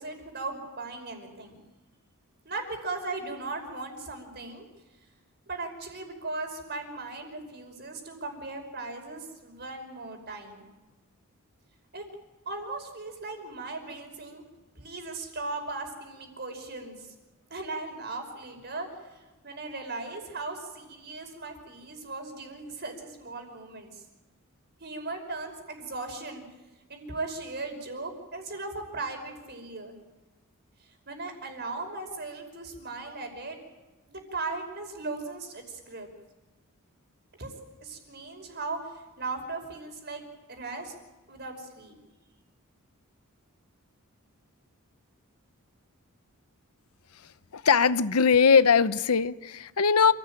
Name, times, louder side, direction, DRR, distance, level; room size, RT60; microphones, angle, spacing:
voice 1, 0.0-1.6 2.5-4.7 5.5-10.6 11.9-12.0 12.5-14.4 14.8-17.1 17.5-24.0 24.8-26.4 26.9-30.0 31.1-33.6 34.1-36.1 37.4-37.5 37.8-38.8 39.2-40.2 40.5-40.9 41.3-42.0, right 3 dB, 50° right, 5.4 m, -38 dB
voice 2, 47.5-50.1, left 6 dB, 80° left, 0.8 m, -21 dB
28.0 x 16.5 x 9.0 m
head